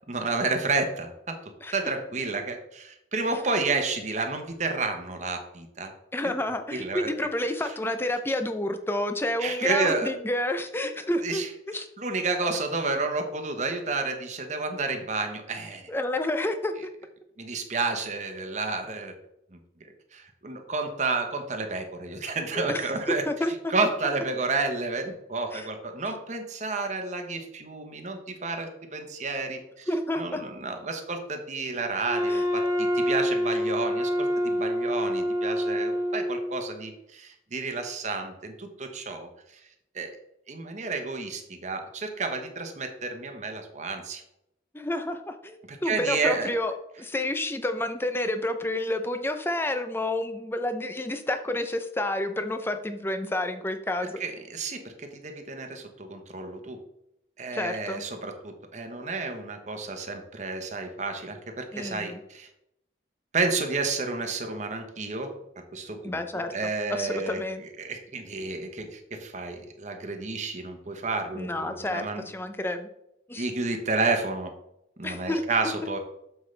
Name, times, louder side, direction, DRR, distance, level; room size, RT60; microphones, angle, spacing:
voice 1, 0.1-1.3 1.7-5.9 6.2-6.3 6.7-7.1 9.4-10.1 11.2-11.5 12.0-15.8 17.4-19.1 19.5-23.2 23.7-29.9 30.2-39.3 39.9-40.1 40.5-44.2 45.7-46.5 54.2-56.8 57.4-62.5 63.3-65.3 65.7-72.2 73.4-74.5 75.0-76.0, right 3 dB, 40° right, 5 dB, 1.0 m, -31 dB
voice 2, 6.1-11.9 15.9-16.7 22.5-23.7 25.5-25.7 29.9-30.4 32.3-32.4 44.7-54.2 57.5-58.0 61.7-62.2 66.0-67.6 71.3-72.9 73.3-73.5 75.0-75.4, left 1 dB, 10° left, 7 dB, 0.6 m, -30 dB
Wind instrument woodwind instrument, 32.0-36.7, equal, 15° right, 1.3 m, -27 dB
7.8 x 7.0 x 3.3 m, 0.81 s
head